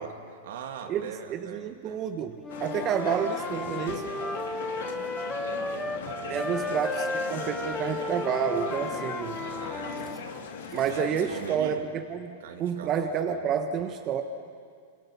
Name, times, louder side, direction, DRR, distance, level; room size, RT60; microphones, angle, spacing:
voice 1, 0.0-2.2 5.4-7.1 7.6-7.9 9.3-10.4 10.9-11.9 12.4-13.5, right 7 dB, 70° right, 5 dB, 2.5 m, -42 dB
voice 2, 0.9-4.1 6.3-9.4 10.7-14.2, right 7 dB, 35° right, 5 dB, 1.4 m, -29 dB
Wind instrument woodwind instrument, 2.4-6.0 6.3-10.2, left 2 dB, 15° left, 1.5 m, -35 dB
sound 1, 2.5-11.6, left 6 dB, 75° left, 2.6 m, -39 dB
Telephone, 4.2-11.1, right 4 dB, 15° right, 3.3 m, -42 dB
28.0 x 27.0 x 6.0 m, 2.1 s
hypercardioid pair, 120°, 0 cm